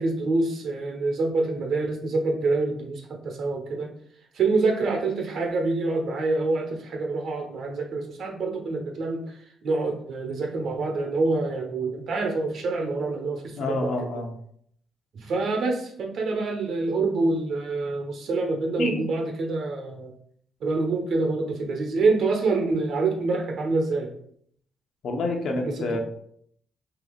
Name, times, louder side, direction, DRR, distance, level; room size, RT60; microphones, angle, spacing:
voice 1, 0.0-4.0 4.3-9.4 9.6-13.9 15.1-20.1 20.6-24.1 25.6-26.0, right 3 dB, 65° right, 3 dB, 0.9 m, -26 dB
voice 2, 13.6-14.3 18.8-19.0 25.0-26.0, left 2 dB, 65° left, 2 dB, 0.8 m, -27 dB
2.9 x 2.8 x 4.0 m, 0.65 s
cardioid pair, 90°, 0 cm